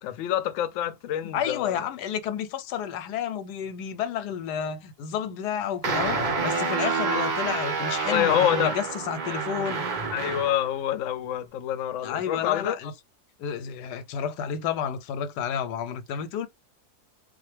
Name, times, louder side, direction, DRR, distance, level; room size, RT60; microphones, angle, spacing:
voice 1, 0.0-1.9 7.1-7.2 8.1-8.7 10.1-12.7, left 11 dB, 70° left, 0.7 m, -27 dB
voice 2, 1.3-9.9 12.0-12.9 13.4-16.5, left 8 dB, 85° left, 1.2 m, -31 dB
sound 1, 5.8-10.7, right 4 dB, 55° right, 0.5 m, -28 dB
3.7 x 2.5 x 3.2 m
omnidirectional pair, 1.7 m